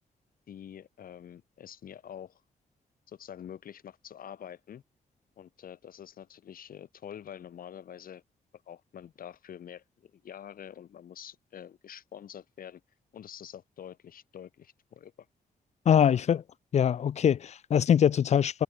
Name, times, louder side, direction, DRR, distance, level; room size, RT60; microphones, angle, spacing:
voice 1, 0.5-2.4 3.1-4.8 5.4-8.2 8.7-12.8 13.1-15.1 16.0-16.2, left 9 dB, 75° left, 2.8 m, -46 dB
voice 2, 15.9-16.4 16.7-18.6, left 8 dB, 50° left, 0.4 m, -23 dB
cardioid pair, 90°, 15 cm